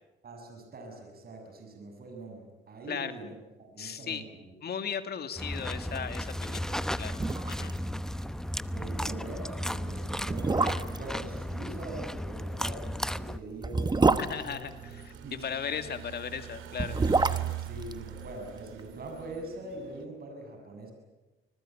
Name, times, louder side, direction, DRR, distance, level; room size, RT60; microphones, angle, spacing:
voice 1, 0.2-4.5 8.7-14.6 15.1-15.5 17.6-20.9, right 2 dB, 50° right, 3 dB, 6.9 m, -43 dB
voice 2, 3.8-4.2 4.6-7.1 7.5-7.7 14.2-15.1 15.4-17.0, left 7 dB, 55° left, 9 dB, 2.3 m, -36 dB
sound 1, 5.4-13.4, equal, 5° left, 0.9 m, -34 dB
sound 2, 7.1-7.8 8.1-8.2 8.6-8.7 9.4-9.5 10.2-11.1 12.6-15.3 16.6-18.8 19.1-19.2, right 3 dB, 20° right, 1.1 m, -28 dB
sound 3, 13.8-20.0, right 12 dB, 90° right, 2.0 m, -41 dB
25.5 x 20.5 x 8.9 m, 1.1 s
cardioid pair, 90°, 20 cm